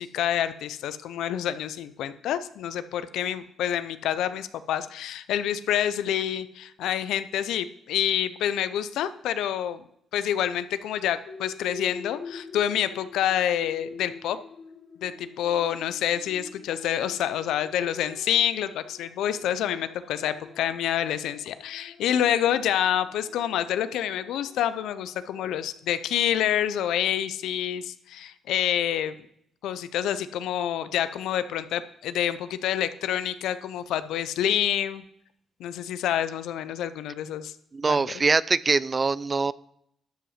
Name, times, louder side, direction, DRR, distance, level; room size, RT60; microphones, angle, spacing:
voice 1, 0.0-9.8 10.1-14.4 15.0-29.1 29.6-35.0 35.6-37.5 37.9-38.1, left 10 dB, 85° left, 13 dB, 0.5 m, -27 dB
sound 1, 11.3-25.5, left 5 dB, 50° left, 1.1 m, -46 dB
voice 2, 37.7-39.5, right 4 dB, 30° right, 20 dB, 0.3 m, -23 dB
12.5 x 5.6 x 5.7 m, 0.73 s
cardioid pair, 90°, 0 cm